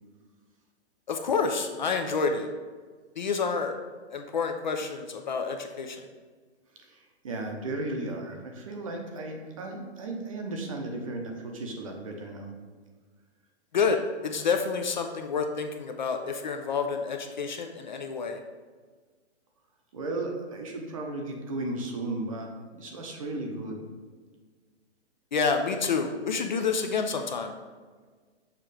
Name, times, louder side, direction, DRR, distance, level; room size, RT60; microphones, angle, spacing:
voice 1, 1.1-2.5 3.2-3.7 4.1-6.0 13.7-18.4 25.3-27.5, left 5 dB, 45° left, 5 dB, 0.4 m, -28 dB
voice 2, 6.7-12.5 19.9-23.8, right 2 dB, 30° right, 2 dB, 0.7 m, -35 dB
6.7 x 3.0 x 4.8 m, 1.5 s
hypercardioid pair, 175°, 33 cm